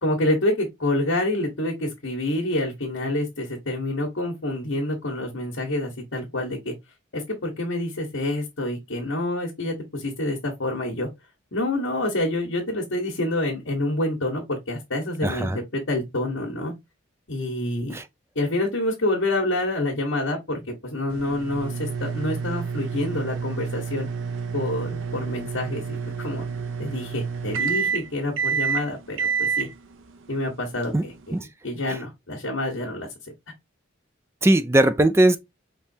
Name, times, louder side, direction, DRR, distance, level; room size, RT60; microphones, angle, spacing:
voice 1, 0.0-6.7 7.1-11.1 11.5-16.7 17.3-18.0 18.3-24.1 24.5-26.4 26.8-29.7 30.3-31.3 31.6-33.1, left 1 dB, 70° left, 1.5 m, -27 dB
voice 2, 15.2-15.6 17.9-18.0 30.9-31.0 31.3-31.5 31.9-32.0 34.4-35.4, right 1 dB, 15° right, 0.4 m, -19 dB
sound 1, 21.1-31.4, right 6 dB, 80° right, 0.7 m, -29 dB
5.4 x 3.1 x 2.7 m
head